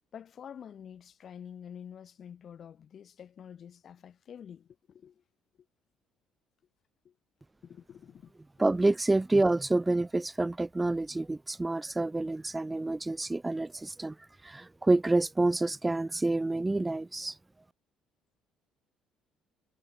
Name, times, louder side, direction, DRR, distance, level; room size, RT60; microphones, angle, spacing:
voice 1, 0.1-5.1 7.0-7.1 7.6-8.3, left 8 dB, 50° left, 1.3 m, -48 dB
voice 2, 8.6-14.2 14.4-17.4, right 2 dB, 15° right, 0.5 m, -28 dB
supercardioid pair, 75°, 0 cm